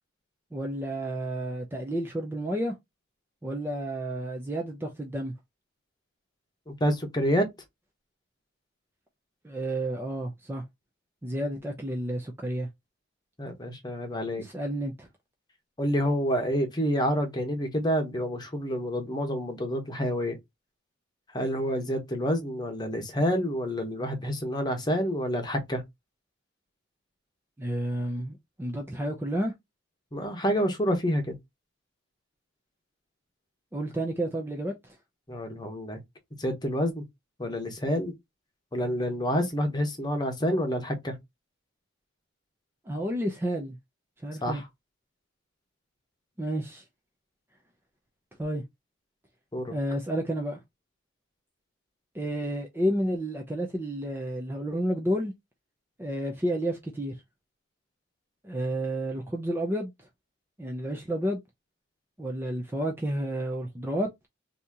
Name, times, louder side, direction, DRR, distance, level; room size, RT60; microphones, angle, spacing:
voice 1, 0.5-2.7 3.4-5.3 9.4-10.6 11.2-12.7 14.3-15.1 27.6-29.5 33.7-35.0 42.9-43.8 44.2-44.6 46.4-46.8 48.4-48.6 49.7-50.6 52.1-55.3 56.0-57.1 58.4-59.9 60.6-61.4 62.2-64.3, right 1 dB, 10° right, 0.4 m, -31 dB
voice 2, 6.7-7.5 13.4-14.4 15.8-20.4 21.3-25.8 30.1-31.4 35.3-36.0 36.4-37.0 37.4-38.1 38.7-41.2 44.4-44.7 49.5-49.7, equal, 20° left, 0.9 m, -28 dB
2.8 x 2.7 x 3.5 m
head